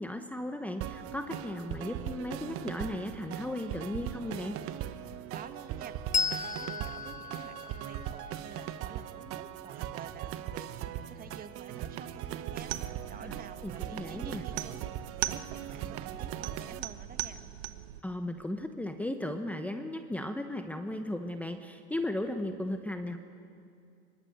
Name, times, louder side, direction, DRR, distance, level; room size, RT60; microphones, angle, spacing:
voice 1, 0.0-4.6 13.2-13.4 13.6-14.4 18.0-23.2, left 1 dB, 5° left, 7 dB, 1.1 m, -36 dB
sound 1, 0.8-16.8, right 11 dB, 40° right, 1.3 m, -40 dB
voice 2, 5.3-6.0 6.3-14.8 15.1-17.4, right 7 dB, 25° right, 9 dB, 1.6 m, -49 dB
Bell, 6.1-9.2, left 6 dB, 20° left, 1.5 m, -35 dB
sound 2, 12.6-18.0, right 14 dB, 60° right, 1.4 m, -40 dB
25.0 x 22.5 x 9.4 m, 2.5 s
hypercardioid pair, 110°, 33 cm